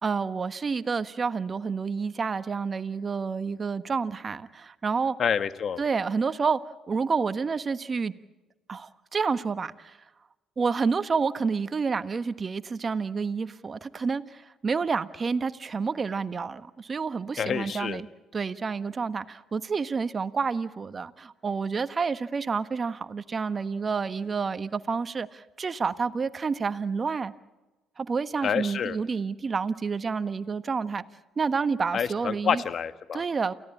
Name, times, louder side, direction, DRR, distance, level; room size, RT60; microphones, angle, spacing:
voice 1, 0.0-5.2 5.8-6.6 6.9-8.1 8.7-9.9 10.6-18.1 18.3-27.3 28.0-31.0 31.4-32.6 33.1-33.5, right 5 dB, 40° right, 12 dB, 1.3 m, -29 dB
voice 2, 5.2-5.8 17.4-18.0 28.4-29.0 31.9-33.2, left 7 dB, 55° left, 12 dB, 1.4 m, -28 dB
29.0 x 16.5 x 8.6 m, 1.1 s
hypercardioid pair, 60°, 0 cm